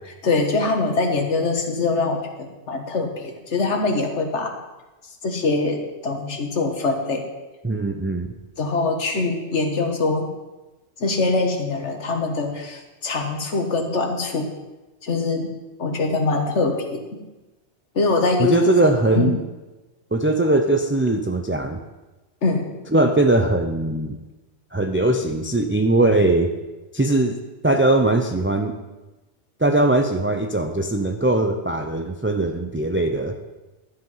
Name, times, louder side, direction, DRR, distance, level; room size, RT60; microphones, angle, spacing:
voice 1, 0.2-4.6 5.2-7.2 8.6-10.2 11.0-14.5 15.0-15.5 15.8-17.2 17.9-18.7 19.1-19.3 22.4-22.8, left 3 dB, 85° left, 4 dB, 1.7 m, -23 dB
voice 2, 7.6-8.3 18.4-19.4 20.1-21.8 22.9-24.2 24.7-26.5 26.9-27.4 27.6-28.7 29.6-33.4, right 2 dB, 15° right, 4 dB, 0.5 m, -20 dB
12.0 x 7.9 x 5.6 m, 1.1 s
omnidirectional pair, 1.2 m